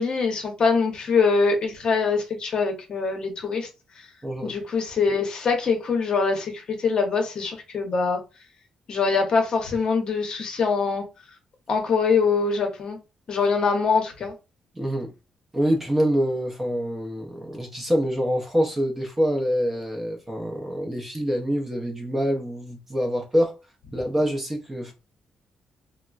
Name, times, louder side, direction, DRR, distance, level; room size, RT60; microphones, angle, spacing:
voice 1, 0.0-3.7 4.4-8.2 8.9-11.0 11.7-13.0 13.3-14.3, left 4 dB, 40° left, 0.7 m, -23 dB
voice 2, 4.2-4.5 14.8-15.1 15.5-23.5 23.9-24.9, equal, 15° right, 0.6 m, -25 dB
3.5 x 2.0 x 2.3 m
wide cardioid pair, 170°, 2 cm